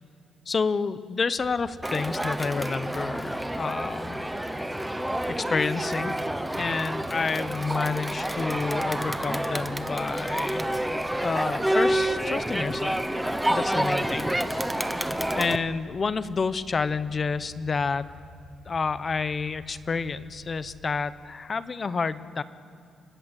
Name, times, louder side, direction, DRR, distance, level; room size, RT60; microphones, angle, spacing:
voice 1, 0.5-4.2 5.3-6.1 6.6-13.0 13.5-14.3 14.6-18.1 18.7-22.4, left 4 dB, 30° left, 14 dB, 0.8 m, -29 dB
sound 1, 1.4-20.8, left 3 dB, 45° left, 1.8 m, -50 dB
Crowd, 1.8-15.6, right 1 dB, 5° right, 0.8 m, -28 dB
29.0 x 18.5 x 8.2 m, 2.4 s
cardioid pair, 170°, 0 cm